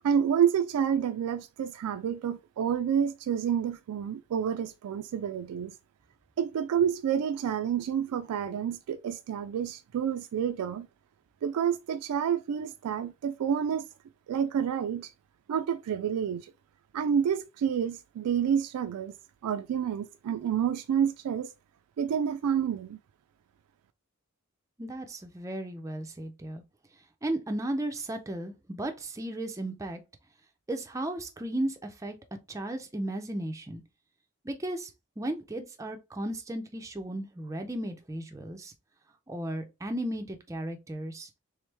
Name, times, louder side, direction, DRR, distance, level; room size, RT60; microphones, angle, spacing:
voice 1, 0.0-5.7 6.4-10.9 11.4-13.9 14.3-15.1 15.5-16.5 16.9-19.1 19.4-21.5 22.0-23.0, right 8 dB, 90° right, 0.3 m, -29 dB
voice 2, 24.8-26.6 27.2-30.0 30.7-32.2 32.5-33.8 34.4-38.7 39.3-41.3, right 1 dB, 15° right, 0.4 m, -35 dB
3.4 x 3.1 x 3.3 m
head